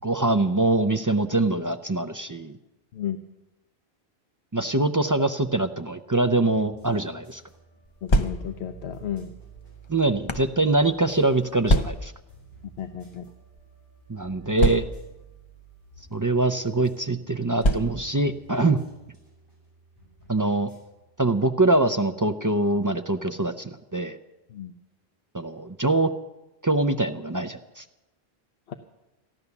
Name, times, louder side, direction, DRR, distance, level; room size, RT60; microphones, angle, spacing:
voice 1, 0.0-2.6 4.5-7.4 9.9-12.1 14.1-14.8 16.1-18.8 20.3-20.7 21.2-24.2 25.3-26.1 26.6-27.8, right 2 dB, 25° right, 8 dB, 0.4 m, -24 dB
sound 1, 6.5-21.8, right 2 dB, 55° left, 6.6 m, -51 dB
sound 2, 7.9-8.7 9.5-10.5 11.7-12.3 13.1-13.3 13.6-13.7 14.6-15.2 16.1-16.3 17.6-18.2, equal, 30° left, 0.6 m, -24 dB
voice 2, 8.0-9.3 12.6-13.3 24.5-24.7 28.7-28.8, left 10 dB, 85° left, 8 dB, 1.0 m, -33 dB
15.0 x 11.0 x 7.0 m, 1.0 s
omnidirectional pair, 1.0 m